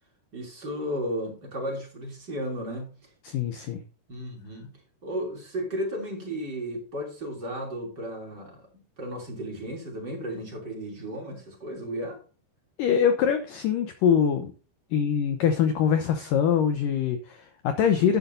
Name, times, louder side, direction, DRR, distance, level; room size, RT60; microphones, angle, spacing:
voice 1, 0.3-3.1 4.1-8.7 9.0-12.2, equal, 25° right, 0 dB, 3.0 m, -34 dB
voice 2, 3.3-3.8 12.8-14.5 14.9-18.2, left 8 dB, 80° left, 8 dB, 2.0 m, -23 dB
12.5 x 10.0 x 2.7 m, 0.38 s
omnidirectional pair, 5.1 m